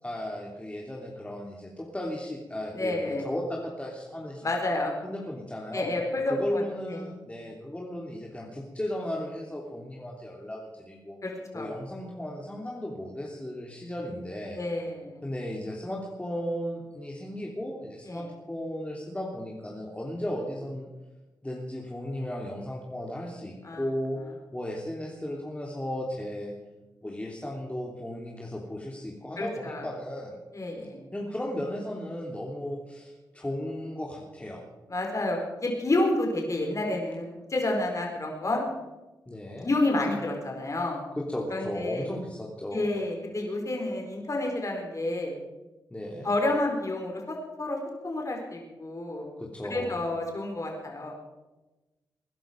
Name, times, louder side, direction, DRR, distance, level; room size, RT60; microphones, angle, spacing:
voice 1, 0.0-4.4 5.0-5.9 6.3-11.2 11.5-14.6 15.2-20.9 21.4-24.2 24.5-26.5 27.0-30.4 31.1-34.6 39.3-39.7 41.2-42.9 45.9-46.3 49.4-50.0, left 1 dB, 15° left, -2 dB, 3.1 m, -35 dB
voice 2, 2.7-3.2 4.4-5.0 5.7-6.6 6.9-7.1 11.2-11.7 14.6-15.2 18.1-18.3 23.6-23.8 29.4-29.9 30.5-31.0 34.9-38.6 39.6-41.0 41.5-42.1 42.7-45.3 46.2-47.8 48.0-49.3 49.6-51.1, left 2 dB, 40° left, 1 dB, 4.5 m, -29 dB
21.0 x 11.0 x 5.2 m, 1.1 s
cardioid pair, 60°, 8 cm